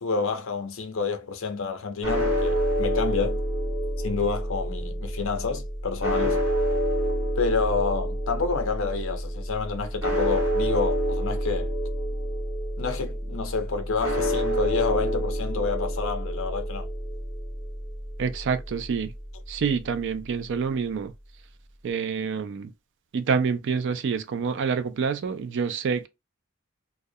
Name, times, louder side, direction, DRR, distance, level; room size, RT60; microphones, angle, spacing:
voice 1, 0.0-3.4 4.0-6.4 7.4-11.7 12.8-16.9, left 4 dB, 60° left, 0.6 m, -29 dB
sound 1, 2.0-20.3, equal, 10° right, 0.9 m, -28 dB
voice 2, 18.2-19.1 19.5-21.1 21.8-22.7 23.1-26.1, right 5 dB, 55° right, 0.4 m, -27 dB
2.3 x 2.0 x 2.6 m
head